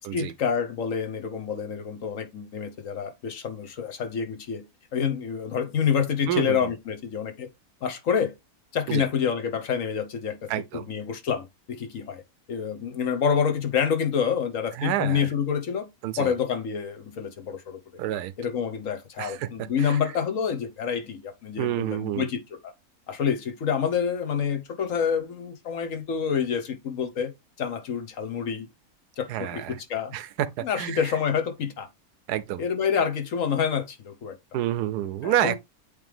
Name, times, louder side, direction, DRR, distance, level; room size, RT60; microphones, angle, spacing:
voice 1, 0.1-4.7 4.9-7.5 7.8-8.3 8.7-12.2 12.5-15.9 16.2-17.8 18.4-22.7 23.1-27.3 27.6-28.7 29.2-30.1 30.6-31.9 32.6-34.4 35.2-35.6, left 7 dB, 60° left, 1.3 m, -27 dB
voice 2, 6.3-6.6 8.9-9.0 10.5-10.8 14.8-15.3 16.0-16.3 18.0-18.3 19.2-19.5 19.8-20.0 21.6-22.3 29.3-29.8 30.1-30.3 30.6-31.0 32.3-32.6 34.5-35.6, right 12 dB, 90° right, 1.1 m, -28 dB
8.4 x 3.4 x 3.4 m
omnidirectional pair, 1.6 m